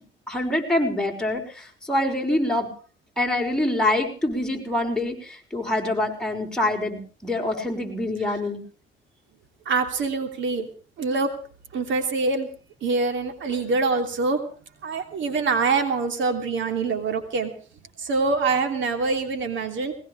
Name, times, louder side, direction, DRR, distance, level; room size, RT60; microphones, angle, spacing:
voice 1, 0.3-2.7 3.2-8.6, left 1 dB, 5° left, 1 dB, 5.7 m, -25 dB
voice 2, 9.6-10.7 11.0-11.3 11.7-12.5 12.8-14.4 14.8-17.5 18.0-19.9, right 4 dB, 70° right, 6 dB, 3.0 m, -24 dB
20.5 x 20.0 x 3.3 m, 0.42 s
cardioid pair, 90°, 20 cm